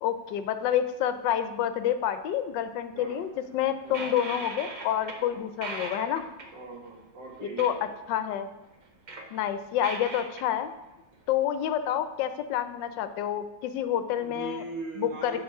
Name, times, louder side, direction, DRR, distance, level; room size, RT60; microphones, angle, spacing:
voice 1, 0.0-6.2 7.4-7.7 8.1-8.5 9.3-10.7 11.3-14.6 15.0-15.4, left 10 dB, 85° left, 10 dB, 1.3 m, -28 dB
voice 2, 2.9-3.2 3.8-4.1 5.3-5.5 6.5-7.9 14.2-15.4, right 4 dB, 90° right, -1 dB, 2.3 m, -40 dB
sound 1, 3.5-5.2 5.5-6.6 7.5-7.7 8.0-8.1 8.7-10.4, right 3 dB, 55° right, 0.4 m, -39 dB
8.7 x 4.2 x 4.7 m, 1.0 s
omnidirectional pair, 1.9 m